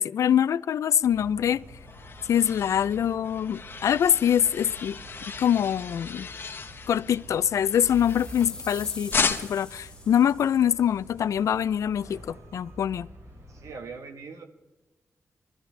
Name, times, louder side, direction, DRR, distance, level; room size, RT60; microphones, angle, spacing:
voice 1, 0.0-1.6 2.3-5.0 5.4-6.3 6.9-13.1, left 9 dB, 85° left, 0.4 m, -24 dB
sound 1, 1.0-13.7, right 1 dB, 65° right, 2.8 m, -47 dB
sound 2, 1.4-8.7 9.1-9.8, left 5 dB, 45° left, 1.0 m, -35 dB
sound 3, 7.5-10.7, left 2 dB, 15° left, 1.2 m, -44 dB
voice 2, 13.5-14.4, right 4 dB, 90° right, 1.2 m, -41 dB
22.0 x 14.0 x 3.3 m
wide cardioid pair, 135°, 5 cm